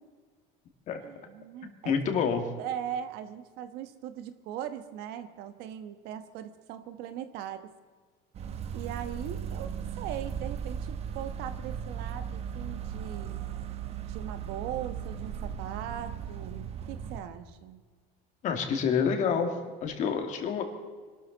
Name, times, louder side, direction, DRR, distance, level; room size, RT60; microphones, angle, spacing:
voice 1, 1.0-2.2 2.6-7.7 8.7-13.5 14.0-17.8, right 10 dB, 65° right, 10 dB, 1.3 m, -40 dB
voice 2, 1.8-2.4 18.4-19.5 19.8-20.6, left 6 dB, 45° left, 4 dB, 2.4 m, -27 dB
sound 1, 8.3-17.2, right 8 dB, 35° right, 1.1 m, -37 dB
25.0 x 13.0 x 4.1 m, 1.5 s
cardioid pair, 145°, 17 cm